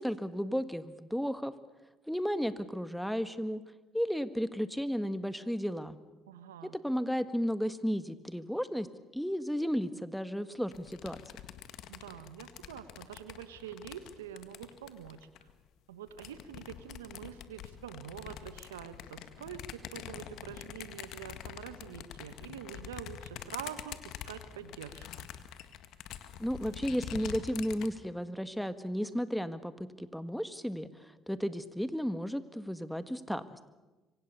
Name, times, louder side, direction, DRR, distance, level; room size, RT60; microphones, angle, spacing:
voice 1, 0.0-1.5 2.1-3.6 3.9-6.0 6.7-8.9 9.1-11.2 26.4-33.7, equal, ahead, 12 dB, 1.7 m, -34 dB
voice 2, 6.3-6.8 11.9-15.3 15.9-25.3, right 9 dB, 90° right, 11 dB, 1.4 m, -46 dB
sound 1, 10.7-15.5 16.1-27.9, left 11 dB, 65° left, 1.8 m, -46 dB
26.5 x 24.5 x 6.9 m, 1.2 s
hypercardioid pair, 55°, 0 cm